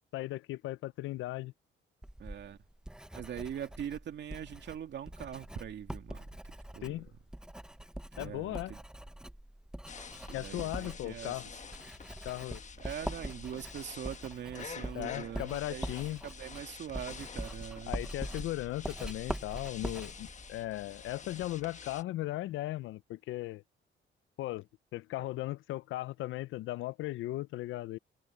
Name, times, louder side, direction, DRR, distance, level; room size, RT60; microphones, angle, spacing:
voice 1, 0.1-1.5 6.8-7.1 8.2-8.7 10.3-11.5 12.2-12.6 14.9-16.2 17.9-23.6 24.4-24.7 24.9-28.0, left 16 dB, 85° left, 0.5 m, -37 dB
Writing, 2.0-21.5, right 1 dB, 5° right, 0.7 m, -43 dB
voice 2, 2.2-2.6 3.1-6.3 6.7-6.9 8.2-8.8 10.3-11.4 12.8-18.0, right 9 dB, 65° right, 2.5 m, -42 dB
sound 1, 9.9-22.0, left 6 dB, 35° left, 1.2 m, -48 dB
cardioid pair, 90°, 20 cm